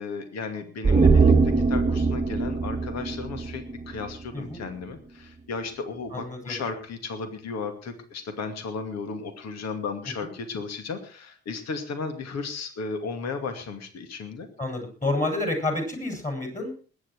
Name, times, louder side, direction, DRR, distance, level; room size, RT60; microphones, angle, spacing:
voice 1, 0.0-14.5, left 4 dB, 55° left, 7 dB, 2.4 m, -35 dB
sound 1, 0.8-4.2 4.5-4.6, right 4 dB, 20° right, 1.3 m, -22 dB
voice 2, 4.3-4.7 6.1-6.6 14.6-16.7, left 2 dB, 25° left, 4 dB, 7.5 m, -29 dB
20.5 x 9.2 x 4.8 m, 0.38 s
figure-of-eight pair, 40°, 31 cm